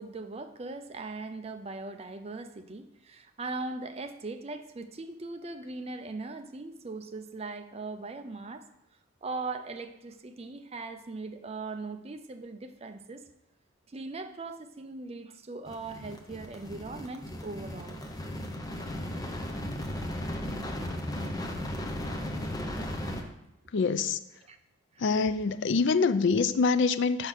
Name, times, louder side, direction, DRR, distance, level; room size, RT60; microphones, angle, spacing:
voice 1, 0.0-8.6 9.2-13.2 13.9-18.0 24.5-24.6, right 3 dB, 30° right, 7 dB, 0.5 m, -39 dB
sound 1, 15.7-23.2, left 1 dB, 20° left, 0.7 m, -36 dB
voice 2, 23.7-24.2 25.0-27.3, left 4 dB, 60° left, 12 dB, 0.4 m, -25 dB
5.7 x 5.4 x 6.3 m, 0.86 s
head